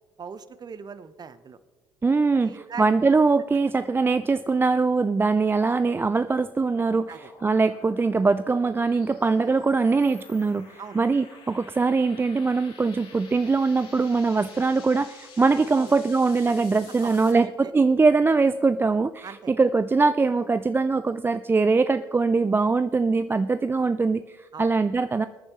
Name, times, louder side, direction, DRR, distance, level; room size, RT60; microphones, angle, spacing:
voice 1, 0.2-1.6 2.3-2.9 7.1-7.3 10.8-11.0 15.7-15.9 16.5-16.6 17.0-17.7 19.2-19.5 24.5-24.7, right 6 dB, 35° right, 13 dB, 0.9 m, -40 dB
voice 2, 2.0-25.3, right 4 dB, 20° right, 12 dB, 0.4 m, -22 dB
sound 1, 6.1-17.3, left 5 dB, 55° left, 3.8 m, -50 dB
21.0 x 9.8 x 3.1 m, 1.3 s
hypercardioid pair, 55°, 12 cm